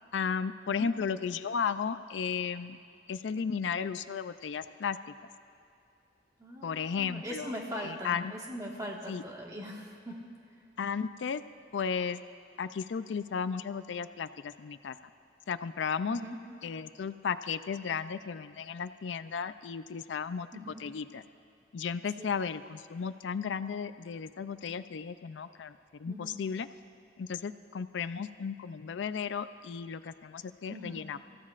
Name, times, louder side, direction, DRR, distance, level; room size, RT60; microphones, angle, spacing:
voice 1, 0.1-2.8 3.1-5.1 6.6-7.5 7.8-8.3 9.1-9.2 10.8-11.4 11.7-12.2 12.6-15.0 15.5-16.2 16.6-21.2 21.7-26.7 27.2-31.2, left 6 dB, 85° left, 13 dB, 0.4 m, -34 dB
voice 2, 6.4-10.3 16.1-16.4 20.5-20.8 22.2-22.4 26.1-26.4 30.7-31.1, equal, 20° right, -2 dB, 1.6 m, -41 dB
26.5 x 15.0 x 2.5 m, 2.6 s
head